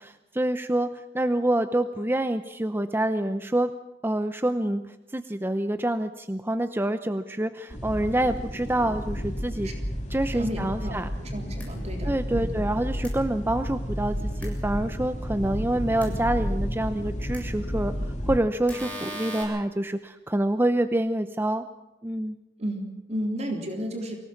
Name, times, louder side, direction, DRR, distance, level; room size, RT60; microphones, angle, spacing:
voice 1, 0.0-3.7 4.0-9.7 10.1-11.1 12.0-17.9 18.3-21.6 22.0-22.4, right 1 dB, 15° right, 9 dB, 0.7 m, -27 dB
sound 1, 7.7-18.4, equal, 40° left, 2.7 m, -31 dB
voice 2, 10.3-12.6 22.6-24.2, equal, 40° right, 2 dB, 3.6 m, -33 dB
sound 2, 11.6-11.7 13.0-13.1 14.4-14.5 16.0-16.1 17.3-17.4 18.7-19.4, equal, 10° left, 7.6 m, -37 dB
24.5 x 18.0 x 7.3 m, 0.99 s
head